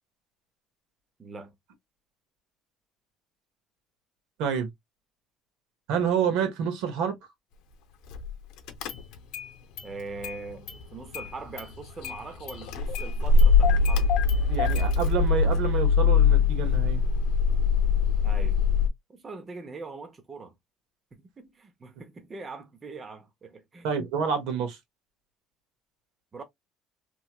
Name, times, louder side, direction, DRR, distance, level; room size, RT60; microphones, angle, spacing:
voice 1, 1.2-1.5 9.8-14.1 18.2-18.6 19.1-20.5 21.1-23.9 26.3-26.4, right 3 dB, 25° right, 0.6 m, -42 dB
voice 2, 5.9-7.1 14.5-17.0 23.8-24.8, right 7 dB, 85° right, 1.2 m, -28 dB
Car / Engine starting, 8.1-8.3 8.7-9.5 9.8-10.8 11.1-18.9, left 5 dB, 80° left, 0.6 m, -23 dB
3.0 x 3.0 x 2.2 m
cardioid pair, 155°, 0 cm